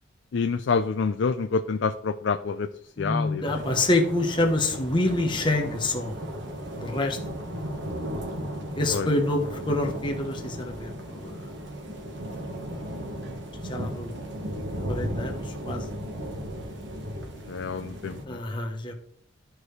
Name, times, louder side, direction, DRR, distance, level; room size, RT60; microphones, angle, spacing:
voice 1, 0.3-2.7 3.0-3.4 8.9-9.1 17.5-18.4, left 5 dB, 70° left, 9 dB, 0.4 m, -27 dB
voice 2, 3.0-6.1 6.8-7.2 8.8-11.5 13.7-14.2 14.9-15.8 18.3-18.9, left 2 dB, 25° left, 1 dB, 1.0 m, -27 dB
sound 1, 3.4-18.2, equal, 65° right, 1.4 m, -35 dB
13.0 x 4.7 x 3.3 m, 0.66 s
head